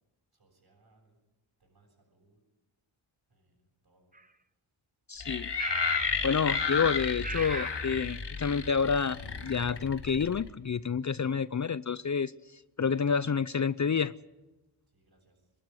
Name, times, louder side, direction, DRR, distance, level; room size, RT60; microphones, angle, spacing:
voice 1, 0.4-1.1 1.6-2.4 3.3-3.5 3.8-4.1 13.0-13.1 14.9-15.3, right 2 dB, 55° right, -4 dB, 7.2 m, -66 dB
sound 1, 4.1-4.2 5.6-6.2 6.5-6.8 7.2-7.8, right 3 dB, 20° right, 1.0 m, -37 dB
voice 2, 5.1-5.5 6.2-14.1, left 6 dB, 40° left, 17 dB, 0.6 m, -29 dB
sound 2, 5.2-10.5, left 5 dB, 65° left, 2.1 m, -32 dB
24.5 x 12.0 x 9.7 m, 1.1 s
cardioid pair, 55°, 45 cm